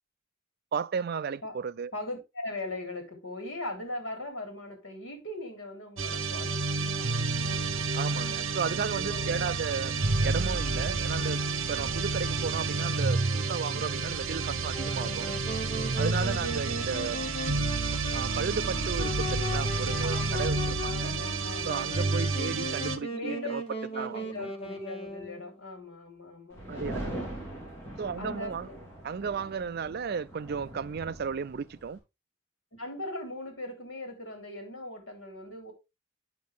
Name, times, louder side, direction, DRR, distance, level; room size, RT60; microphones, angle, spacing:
voice 1, 0.7-1.9 7.9-10.0 10.2-11.4 11.7-15.4 16.0-17.2 18.1-21.1 21.6-23.6 23.9-24.5 26.7-27.2 28.0-28.7 29.0-32.0, right 6 dB, 50° right, 0.4 m, -34 dB
voice 2, 1.9-7.9 8.9-9.4 10.6-11.0 13.7-14.1 14.8-15.0 15.8-16.6 20.0-22.2 23.1-23.5 23.7-27.3 28.1-28.8 32.8-35.7, left 2 dB, 70° left, 3.2 m, -40 dB
sound 1, 6.0-23.0, right 3 dB, 80° right, 0.9 m, -30 dB
Wind instrument woodwind instrument, 14.7-25.6, left 1 dB, 30° left, 1.2 m, -38 dB
sound 2, 26.5-32.0, right 1 dB, 15° left, 3.2 m, -41 dB
8.4 x 6.1 x 3.4 m
head